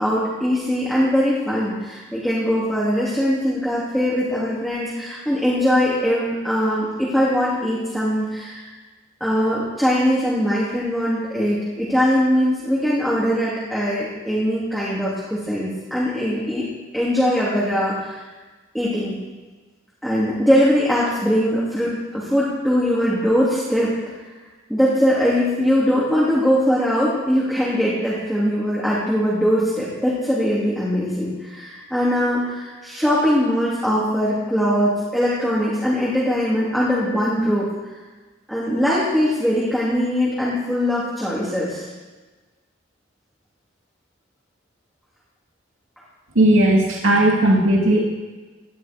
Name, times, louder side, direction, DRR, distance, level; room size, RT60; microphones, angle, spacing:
voice 1, 0.0-8.7 9.2-16.7 16.9-18.3 18.7-19.2 20.0-23.9 24.7-37.7 38.5-41.9, equal, ahead, -8 dB, 3.2 m, -21 dB
voice 2, 46.4-48.0, right 1 dB, 85° right, -2 dB, 2.3 m, -16 dB
18.0 x 13.0 x 4.6 m, 1.3 s
head